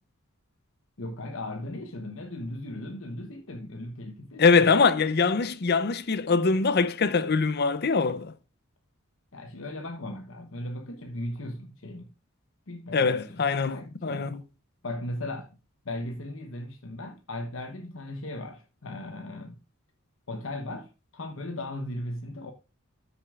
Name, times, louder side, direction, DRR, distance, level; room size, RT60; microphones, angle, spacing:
voice 1, 1.0-4.8 9.3-12.1 12.7-14.4 14.8-15.6 15.8-19.6 20.3-22.5, left 1 dB, 65° left, 1.0 m, -37 dB
voice 2, 4.4-8.3 12.9-13.8 14.0-14.4, left 4 dB, 50° left, 0.6 m, -23 dB
13.0 x 6.7 x 2.5 m
head